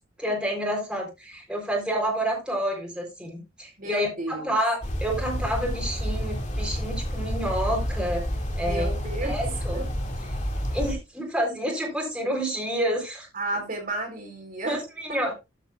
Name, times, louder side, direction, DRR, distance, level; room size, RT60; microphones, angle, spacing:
voice 1, 0.2-8.2 8.6-9.8 10.3-10.4 10.7-13.3 14.6-15.3, equal, 5° right, 3.9 m, -29 dB
voice 2, 3.8-4.5 8.7-9.4 9.7-9.9 13.3-14.8, right 1 dB, 45° right, 4.1 m, -32 dB
sound 1, 4.8-10.9, equal, 35° left, 2.4 m, -29 dB
13.5 x 8.0 x 2.5 m
head